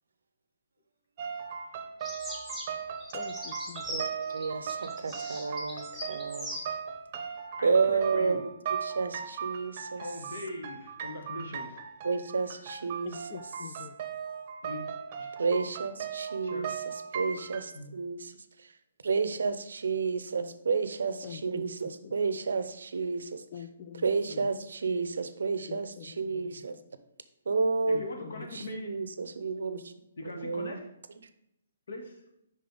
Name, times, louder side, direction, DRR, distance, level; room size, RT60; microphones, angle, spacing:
sound 1, 1.2-17.7, right 7 dB, 40° right, 0.6 m, -38 dB
sound 2, 2.0-6.7, equal, 5° left, 1.2 m, -40 dB
voice 1, 3.1-4.0 13.0-13.9 21.2-22.1 23.5-24.5 25.7-26.6 27.9-28.5, left 8 dB, 40° left, 8 dB, 0.4 m, -45 dB
voice 2, 3.9-6.6 7.6-8.5 8.8-10.0 12.0-13.3 15.4-16.7 17.1-18.3 19.0-23.4 24.0-26.8 27.5-28.0 28.5-29.9 30.3-30.8, right 4 dB, 80° right, 12 dB, 0.5 m, -31 dB
voice 3, 7.6-8.4 10.0-11.8 14.6-14.8 15.2-15.3 16.4-16.7 17.7-17.9 27.9-28.9 30.2-30.8 31.9-32.2, left 2 dB, 75° left, 3 dB, 1.4 m, -40 dB
5.4 x 5.0 x 3.9 m, 0.81 s
hypercardioid pair, 150°, 0 cm